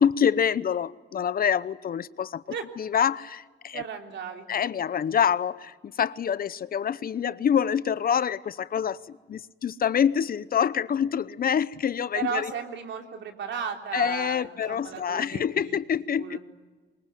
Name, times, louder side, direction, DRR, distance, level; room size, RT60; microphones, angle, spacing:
voice 1, 0.0-3.8 4.5-12.5 13.9-16.4, left 8 dB, 45° left, 0.8 m, -26 dB
voice 2, 3.7-4.5 12.1-15.8 16.2-16.4, right 7 dB, 70° right, 3.5 m, -35 dB
24.0 x 21.5 x 9.1 m
cardioid pair, 90°, 20 cm